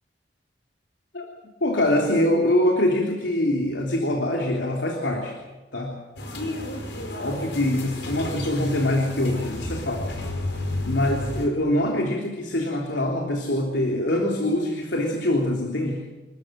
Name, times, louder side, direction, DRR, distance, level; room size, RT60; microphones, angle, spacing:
voice 1, 1.6-5.4 5.7-6.0 7.2-10.1 10.8-16.0, left 1 dB, 90° left, 1 dB, 3.3 m, -24 dB
sound 1, 6.2-11.5, left 1 dB, 70° left, 5.1 m, -31 dB
28.0 x 14.0 x 9.3 m, 1.2 s
head